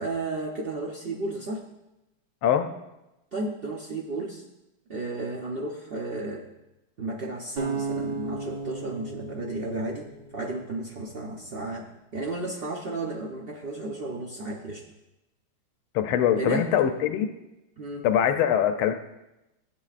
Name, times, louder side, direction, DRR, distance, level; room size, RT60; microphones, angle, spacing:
voice 1, 0.0-1.6 3.3-4.4 4.9-6.5 7.0-11.9 12.1-14.8 16.4-16.7 17.8-18.1, right 2 dB, 85° right, -1 dB, 0.5 m, -33 dB
sound 1, 7.6-10.7, right 3 dB, 35° right, 1.2 m, -34 dB
voice 2, 15.9-17.3 18.0-18.9, left 9 dB, 90° left, 7 dB, 1.5 m, -23 dB
15.5 x 8.5 x 2.4 m, 0.94 s
omnidirectional pair, 2.3 m